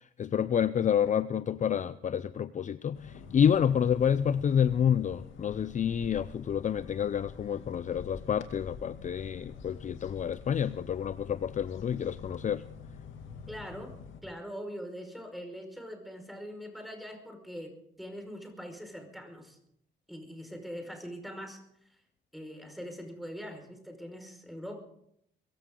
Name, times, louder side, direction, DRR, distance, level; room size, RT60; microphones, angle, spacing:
voice 1, 0.0-12.6, left 8 dB, 40° left, 0.5 m, -28 dB
sound 1, 2.9-14.2, left 6 dB, 80° left, 2.4 m, -47 dB
voice 2, 13.5-14.0 14.2-19.6 20.1-21.6 22.3-24.8, equal, ahead, 5.2 m, -42 dB
22.5 x 15.5 x 3.8 m
cardioid pair, 90°, 20 cm